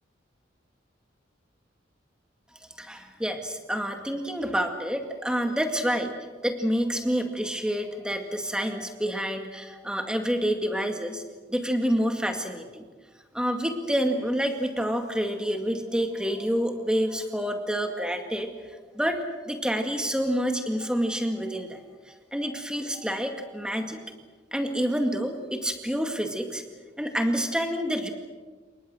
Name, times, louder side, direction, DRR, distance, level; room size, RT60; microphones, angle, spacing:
voice 1, 2.8-6.1 6.4-11.2 11.5-12.8 13.3-18.5 18.9-19.2 19.5-24.0 24.5-26.6 27.0-28.1, equal, 5° right, 4 dB, 2.1 m, -28 dB
28.0 x 23.0 x 6.3 m, 1.4 s
head